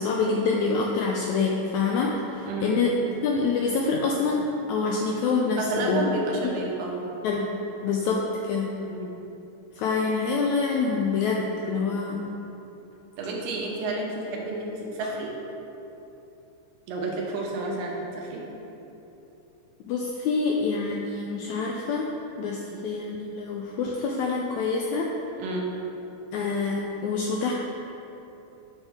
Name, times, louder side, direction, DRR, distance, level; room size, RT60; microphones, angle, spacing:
voice 1, 0.0-3.0 3.2-6.1 7.2-8.7 9.8-12.3 15.0-15.1 19.9-22.1 22.4-25.1 26.3-27.5, left 4 dB, 85° left, 0 dB, 1.6 m, -26 dB
voice 2, 5.6-7.0 8.8-9.1 11.6-12.5 13.2-15.4 16.9-18.5 22.7-22.8 25.4-25.7, right 2 dB, 85° right, -2 dB, 2.7 m, -31 dB
9.0 x 7.2 x 3.6 m, 2.9 s
omnidirectional pair, 3.9 m